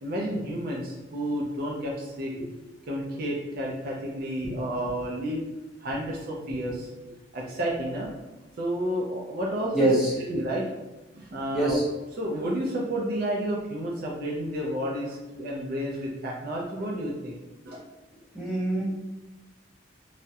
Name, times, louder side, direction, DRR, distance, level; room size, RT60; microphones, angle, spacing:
voice 1, 0.0-2.3 2.9-5.4 5.8-6.9 7.3-8.1 8.6-9.9 10.3-10.7 11.1-11.8 12.2-17.4 17.6-17.8, equal, 50° right, -2 dB, 0.4 m, -31 dB
voice 2, 9.7-10.1 11.5-11.8 18.3-18.8, right 1 dB, ahead, -7 dB, 0.6 m, -24 dB
2.2 x 2.0 x 2.7 m, 1.1 s
head